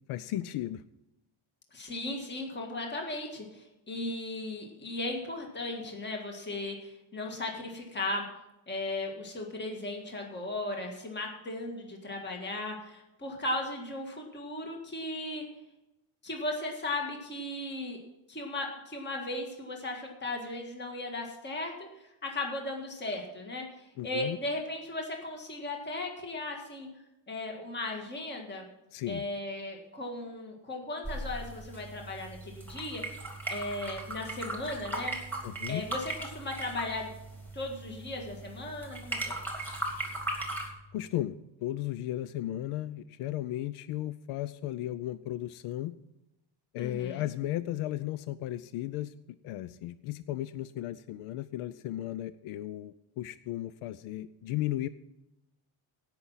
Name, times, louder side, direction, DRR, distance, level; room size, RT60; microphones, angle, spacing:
voice 1, 0.1-0.8 24.0-24.4 28.9-29.2 35.4-35.9 40.9-46.0 46.7-49.1 49.4-54.9, left 14 dB, 80° left, 15 dB, 0.6 m, -35 dB
voice 2, 1.7-8.2 8.7-15.4 16.2-18.0 18.3-26.9 27.3-28.6 29.1-33.0 33.5-35.2 35.7-37.1 37.5-39.4 46.8-47.2, left 2 dB, 20° left, 1 dB, 1.7 m, -36 dB
sound 1, 31.0-40.7, right 2 dB, 5° left, 2.4 m, -38 dB
17.0 x 5.9 x 5.6 m, 0.91 s
cardioid pair, 150°, 49 cm